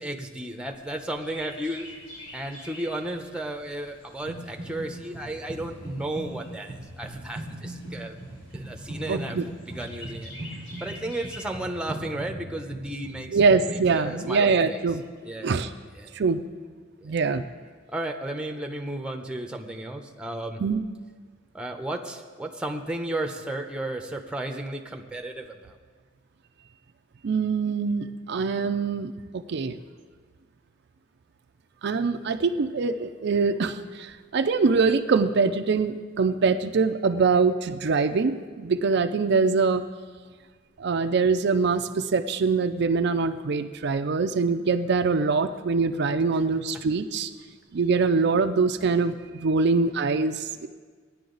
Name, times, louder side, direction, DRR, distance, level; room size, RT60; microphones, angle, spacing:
voice 1, 0.0-1.9 2.3-8.2 8.5-10.3 10.8-14.8 15.2-15.7 15.9-16.1 17.0-17.2 17.9-20.6 21.5-25.8 46.3-46.4, right 1 dB, 5° right, 4 dB, 0.8 m, -34 dB
Chirp tweet, 0.8-11.6, left 1 dB, 70° left, 3.0 m, -48 dB
sound 1, 4.3-4.9 5.1-14.0, right 1 dB, 55° left, 3.1 m, -39 dB
voice 2, 9.1-9.4 13.3-15.0 15.4-15.7 16.1-16.4 17.0-17.4 20.6-20.8 27.2-29.8 31.8-39.8 40.8-47.3 47.7-50.7, right 4 dB, 60° right, 8 dB, 0.4 m, -24 dB
16.5 x 10.0 x 3.9 m, 1.5 s
head